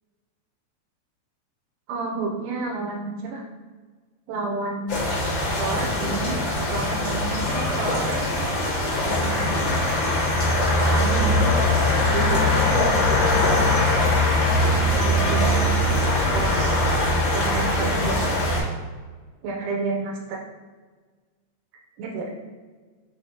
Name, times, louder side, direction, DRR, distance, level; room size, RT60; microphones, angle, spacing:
voice 1, 1.9-3.4 4.3-5.0 5.6-6.4 6.7-8.2 9.0-9.6 10.8-11.5 12.1-14.2 14.9-15.7 16.3-16.8 17.3-18.2 19.4-20.4 22.0-22.3, right 3 dB, 85° right, -1 dB, 2.0 m, -30 dB
sound 1, 4.9-18.6, left 1 dB, 40° left, 1.9 m, -21 dB
5.9 x 3.1 x 2.7 m, 1.4 s
omnidirectional pair, 3.4 m